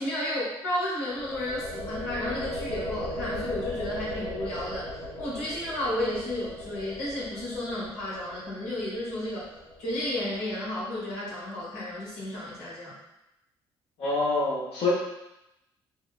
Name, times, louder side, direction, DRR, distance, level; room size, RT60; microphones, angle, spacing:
voice 1, 0.0-4.9 5.2-9.5 9.8-12.9, left 1 dB, 85° left, -8 dB, 1.0 m, -32 dB
sound 1, 1.1-10.9, left 1 dB, 85° right, 0.8 m, -38 dB
voice 2, 14.0-14.9, left 3 dB, 65° left, -9 dB, 0.7 m, -26 dB
2.7 x 2.0 x 2.3 m, 0.90 s
supercardioid pair, 65°, 11 cm